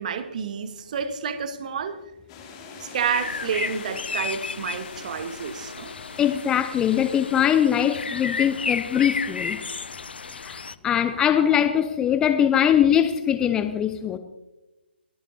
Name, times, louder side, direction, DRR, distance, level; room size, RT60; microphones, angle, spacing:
voice 1, 0.0-2.0 2.8-5.9 11.3-11.4, right 7 dB, 40° right, 10 dB, 1.2 m, -29 dB
sound 1, 2.3-7.5, left 5 dB, 30° left, 2.7 m, -45 dB
sound 2, 3.1-10.7, left 5 dB, 65° left, 0.5 m, -33 dB
voice 2, 6.2-9.6 10.4-14.2, left 9 dB, 10° left, 9 dB, 0.5 m, -22 dB
21.5 x 13.0 x 2.7 m, 1.0 s
figure-of-eight pair, 140°, 6 cm